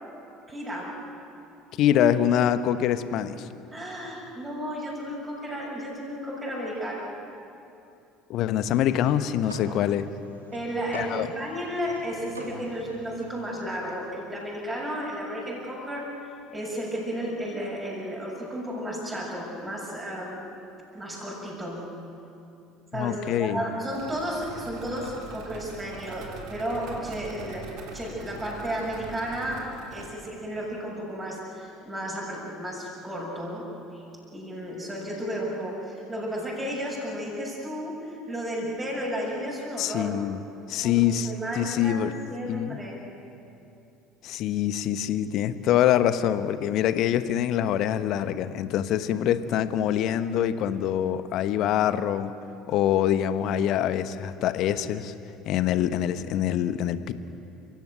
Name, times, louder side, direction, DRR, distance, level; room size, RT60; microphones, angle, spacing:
voice 1, 0.5-1.0 3.7-7.2 10.5-16.1 16.5-20.4 20.9-21.9 22.9-27.7 27.9-33.7 33.9-34.0 34.3-40.1 40.8-43.0, equal, 15° right, -4 dB, 6.9 m, -33 dB
voice 2, 1.8-3.5 8.3-10.1 10.9-11.3 22.9-23.6 39.8-40.4 40.7-42.1 42.5-42.8 44.2-52.3 52.7-55.1 55.5-57.1, left 10 dB, 50° left, 12 dB, 1.1 m, -25 dB
sound 1, 8.6-14.1, right 1 dB, 85° right, 2.5 m, -45 dB
sound 2, 23.9-30.1, right 4 dB, 55° right, 3.3 m, -42 dB
29.5 x 16.5 x 9.4 m, 2.7 s
figure-of-eight pair, 65°, 0 cm